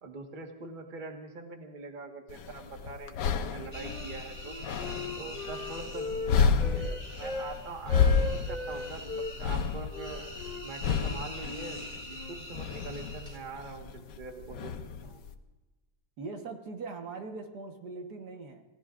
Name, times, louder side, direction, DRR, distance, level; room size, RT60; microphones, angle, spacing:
voice 1, 0.0-4.6 5.2-10.2 10.6-14.7 15.0-15.2, right 3 dB, 30° right, 3 dB, 1.6 m, -43 dB
sound 1, 2.3-15.3, left 6 dB, 85° left, 1.5 m, -31 dB
Wind instrument woodwind instrument, 3.2-4.1 4.4-7.5 7.8-9.3 9.9-12.4, left 2 dB, 5° left, 5.0 m, -39 dB
sound 2, 3.7-13.4, left 1 dB, 15° right, 2.7 m, -45 dB
voice 2, 16.2-18.6, right 4 dB, 70° right, 4 dB, 1.9 m, -41 dB
27.5 x 18.0 x 2.5 m, 1.1 s
omnidirectional pair, 1.8 m